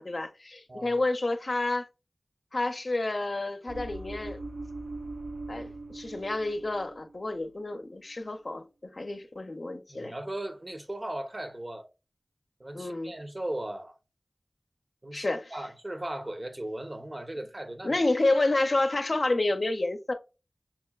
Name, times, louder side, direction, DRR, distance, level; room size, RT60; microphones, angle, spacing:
voice 1, 0.0-1.9 2.5-4.4 5.5-8.7 8.9-10.1 12.7-13.1 15.1-15.5 17.8-20.1, left 2 dB, 60° left, 0.6 m, -29 dB
sound 1, 3.7-7.2 7.4-7.8, right 2 dB, 65° right, 0.6 m, -41 dB
voice 2, 9.9-11.9 12.6-14.0 15.0-15.2 15.5-17.9, right 1 dB, 40° right, 0.8 m, -37 dB
5.9 x 2.2 x 2.3 m
wide cardioid pair, 50°, 0 cm